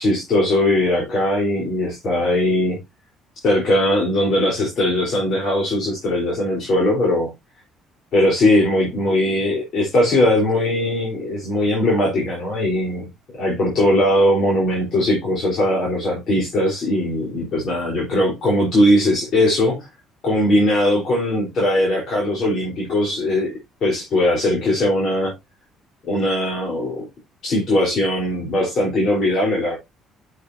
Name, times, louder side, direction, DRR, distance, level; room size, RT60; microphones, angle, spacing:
voice 1, 0.0-2.8 3.4-7.3 8.1-13.1 13.4-19.9 20.2-23.5 23.8-25.3 26.0-27.1 27.4-29.8, left 1 dB, 50° left, 4.0 m, -19 dB
10.5 x 6.6 x 2.7 m
cardioid pair, 115°, 0 cm